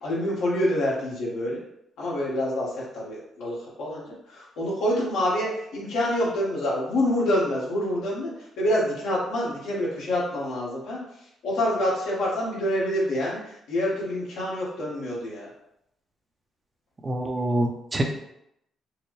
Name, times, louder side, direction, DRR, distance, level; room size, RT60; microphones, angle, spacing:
voice 1, 0.0-1.6 2.0-15.5, left 1 dB, 85° left, -5 dB, 1.5 m, -27 dB
voice 2, 17.0-18.0, right 1 dB, 25° right, 3 dB, 0.6 m, -25 dB
4.5 x 2.1 x 3.1 m, 0.78 s
cardioid pair, 90°, 0 cm